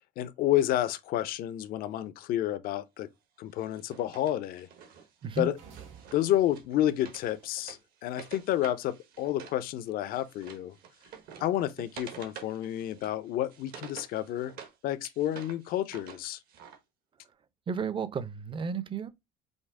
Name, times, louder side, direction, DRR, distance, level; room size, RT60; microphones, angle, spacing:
voice 1, 0.2-3.1 3.4-4.7 5.4-5.6 6.1-10.7 11.4-14.5 14.8-16.4, left 12 dB, 60° left, 0.6 m, -30 dB
Wood, 3.6-9.6 9.9-14.7 15.0-16.8, right 7 dB, 65° right, 1.2 m, -49 dB
sound 1, 5.5-7.8, right 7 dB, 85° right, 2.3 m, -54 dB
voice 2, 17.7-19.1, right 5 dB, 30° right, 0.6 m, -33 dB
5.3 x 2.0 x 3.6 m
supercardioid pair, 95°, 17 cm